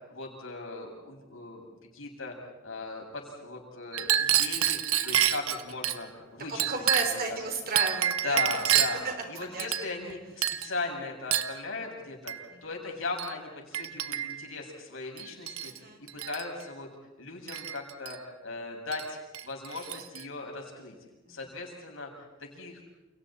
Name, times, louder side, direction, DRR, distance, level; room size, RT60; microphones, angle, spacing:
voice 1, 0.0-2.3 2.6-6.7 7.1-7.4 8.2-9.0 9.3-16.9 17.2-19.2 19.4-20.9 21.3-22.9, left 3 dB, 60° left, 0 dB, 6.8 m, -38 dB
Chink clink, 3.9-6.0 6.6-7.3 7.8-9.1 9.6-10.1 10.4-10.7 11.3-11.6 12.3-12.4 13.2-13.3 13.7-14.4 15.2-15.8 16.1-16.4 17.5-18.2 18.9-19.1 19.3-20.2, right 10 dB, 75° right, 1.2 m, -28 dB
voice 2, 6.5-9.1 9.5-9.7 12.5-12.7 15.6-16.0 21.2-21.3, right 3 dB, 40° right, 5 dB, 3.5 m, -34 dB
29.5 x 29.5 x 4.3 m, 1.1 s
head